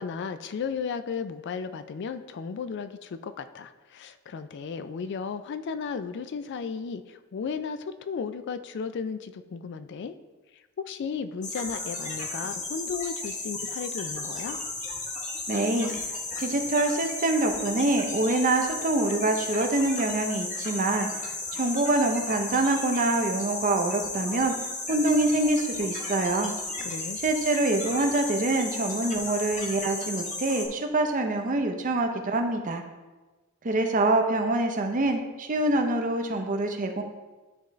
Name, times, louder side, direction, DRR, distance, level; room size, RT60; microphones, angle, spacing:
voice 1, 0.0-10.1 10.5-14.6 26.8-27.2, left 5 dB, 55° left, 10 dB, 0.3 m, -34 dB
sound 1, 11.4-30.7, left 2 dB, 35° left, 1.0 m, -34 dB
voice 2, 15.5-15.9 16.4-24.5 24.9-26.5 27.2-32.8 33.6-37.0, right 2 dB, 40° right, 4 dB, 0.6 m, -25 dB
10.5 x 3.8 x 3.1 m, 1.2 s
head